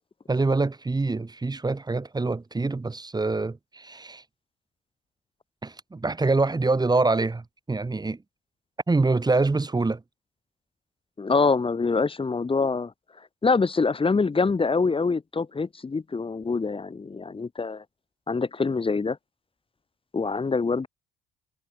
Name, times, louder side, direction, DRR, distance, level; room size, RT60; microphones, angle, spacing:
voice 1, 0.3-4.2 5.6-8.2 8.9-10.0, right 3 dB, 20° right, 2.6 m, -25 dB
voice 2, 11.2-12.9 13.4-17.8 18.3-19.2 20.1-20.9, left 4 dB, 25° left, 2.5 m, -25 dB
hypercardioid pair, 55°, 20 cm